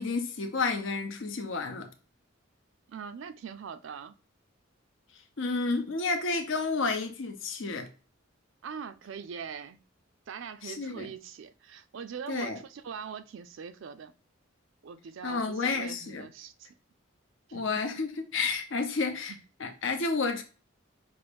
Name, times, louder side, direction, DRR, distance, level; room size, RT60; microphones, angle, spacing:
voice 1, 0.0-1.9 5.4-7.9 10.6-11.1 12.3-12.6 15.2-16.3 17.5-19.3 19.6-20.4, left 4 dB, 65° left, 0.7 m, -31 dB
voice 2, 2.9-4.2 8.6-9.8 10.3-14.1 14.8-16.7 17.5-17.7 19.3-19.4, right 6 dB, 65° right, 0.4 m, -42 dB
5.4 x 2.6 x 3.3 m
head